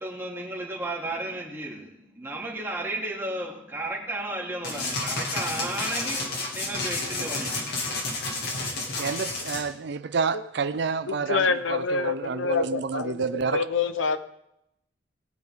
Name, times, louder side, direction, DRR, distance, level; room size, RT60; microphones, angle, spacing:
voice 1, 0.0-6.2 6.5-7.5, right 2 dB, 10° right, -2 dB, 2.7 m, -33 dB
sound 1, 4.6-9.6, left 2 dB, 55° left, 2.5 m, -30 dB
voice 2, 9.0-13.6, right 5 dB, 60° right, 12 dB, 0.5 m, -29 dB
voice 3, 11.1-13.3 13.5-14.2, left 5 dB, 85° left, 11 dB, 0.9 m, -26 dB
20.5 x 9.3 x 3.7 m, 0.81 s
head